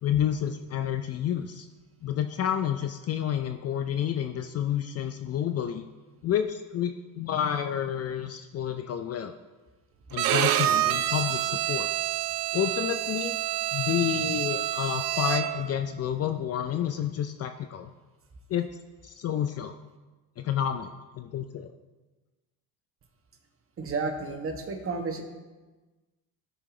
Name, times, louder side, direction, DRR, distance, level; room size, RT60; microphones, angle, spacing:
voice 1, 0.0-1.7 2.0-5.9 6.2-9.3 10.1-11.9 12.5-13.3 13.7-17.9 18.5-18.7 19.0-19.8 20.4-21.7, left 9 dB, 35° left, 8 dB, 0.5 m, -29 dB
Bowed string instrument, 10.1-15.7, right 12 dB, 55° right, 0.7 m, -27 dB
voice 2, 23.8-25.2, right 3 dB, 30° right, 5 dB, 1.2 m, -31 dB
12.5 x 5.0 x 3.8 m, 1.2 s
supercardioid pair, 90°, 42 cm